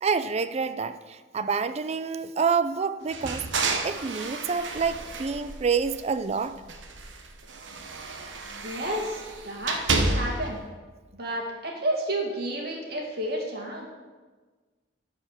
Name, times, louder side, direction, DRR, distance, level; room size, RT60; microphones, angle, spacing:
voice 1, 0.0-3.4 3.8-6.6, right 5 dB, 35° right, 12 dB, 0.4 m, -27 dB
sound 1, 3.1-6.3 6.6-10.6, right 3 dB, 85° right, 0.9 m, -31 dB
voice 2, 8.4-10.6 11.1-13.9, right 1 dB, 60° right, -1 dB, 2.2 m, -31 dB
11.0 x 4.9 x 6.6 m, 1.4 s
head